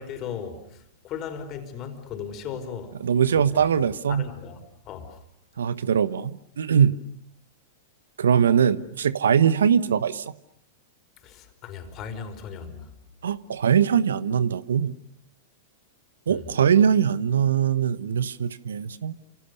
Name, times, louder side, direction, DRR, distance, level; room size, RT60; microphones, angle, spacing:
voice 1, 0.0-3.0 3.3-5.2 11.2-12.9 16.3-16.5, left 7 dB, 40° left, 5.2 m, -37 dB
voice 2, 3.0-4.2 5.6-7.0 8.2-10.2 13.2-14.9 16.3-19.1, right 8 dB, 75° right, 1.1 m, -21 dB
30.0 x 27.0 x 6.9 m
hypercardioid pair, 100°, 0 cm